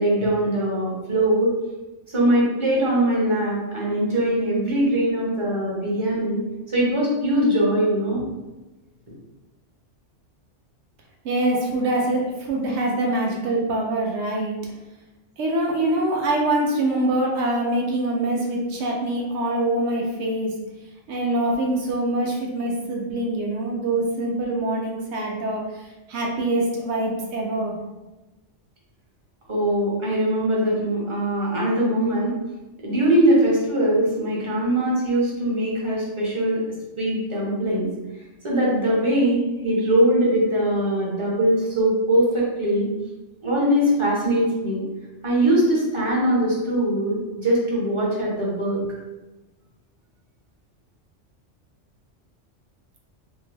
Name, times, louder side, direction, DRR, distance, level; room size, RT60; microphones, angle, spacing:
voice 1, 0.0-1.5 2.1-6.4 6.7-8.2 29.5-32.4 32.8-36.6 37.0-37.9 38.4-42.9 43.4-44.8 45.2-48.8, right 1 dB, 30° right, -6 dB, 0.7 m, -21 dB
voice 2, 11.2-14.6 15.4-20.5 21.1-27.7, right 1 dB, 70° right, -1 dB, 0.8 m, -24 dB
2.6 x 2.1 x 3.2 m, 1.1 s
omnidirectional pair, 1.2 m